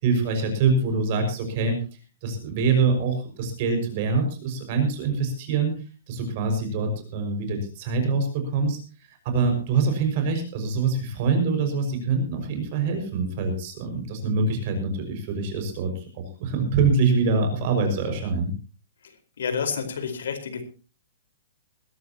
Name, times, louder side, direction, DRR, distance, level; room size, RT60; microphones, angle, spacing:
voice 1, 0.0-1.8 2.2-5.8 6.1-8.8 9.1-18.5, right 4 dB, 30° right, 5 dB, 5.8 m, -24 dB
voice 2, 19.4-20.6, left 6 dB, 75° left, 7 dB, 4.5 m, -29 dB
20.5 x 16.0 x 2.9 m, 0.34 s
hypercardioid pair, 175°, 0 cm